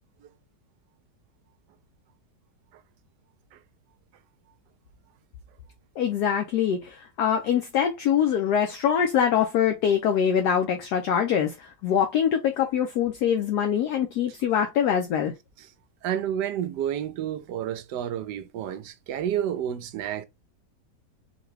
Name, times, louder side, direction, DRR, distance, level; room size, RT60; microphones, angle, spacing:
voice 1, 6.0-15.3, left 8 dB, 75° left, 1.1 m, -24 dB
voice 2, 16.0-20.2, right 10 dB, 75° right, 1.1 m, -30 dB
3.7 x 2.2 x 3.2 m
omnidirectional pair, 1.9 m